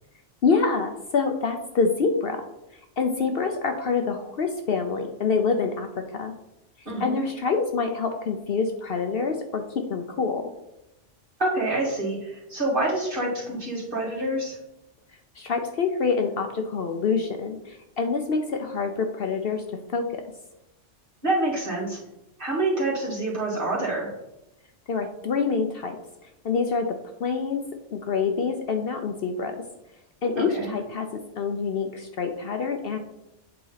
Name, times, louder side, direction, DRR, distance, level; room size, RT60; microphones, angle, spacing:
voice 1, 0.4-2.4 3.0-6.3 7.0-10.5 15.4-19.6 19.9-20.2 24.9-26.0 26.4-26.9 27.2-27.6 27.9-29.6 30.2-31.1 31.4-33.0, left 5 dB, 60° left, 5 dB, 0.8 m, -26 dB
voice 2, 6.9-7.2 11.4-14.6 21.2-22.0 22.4-24.1 30.4-30.7, right 2 dB, 45° right, -6 dB, 2.5 m, -27 dB
8.5 x 4.0 x 4.0 m, 0.88 s
omnidirectional pair, 1.3 m